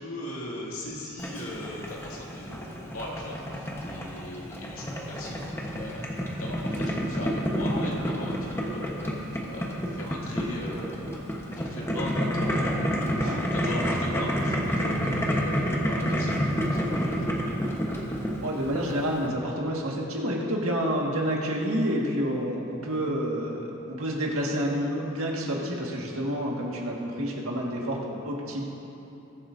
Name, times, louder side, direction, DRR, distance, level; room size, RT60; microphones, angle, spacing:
voice 1, 0.0-11.2 11.5-17.3, left 1 dB, 75° left, -4 dB, 2.3 m, -38 dB
Boiling, 1.2-19.3, equal, 10° left, 1.1 m, -29 dB
voice 2, 12.9-13.4 18.4-28.6, equal, 70° right, -2 dB, 1.8 m, -29 dB
20.5 x 8.1 x 2.7 m, 3.0 s
head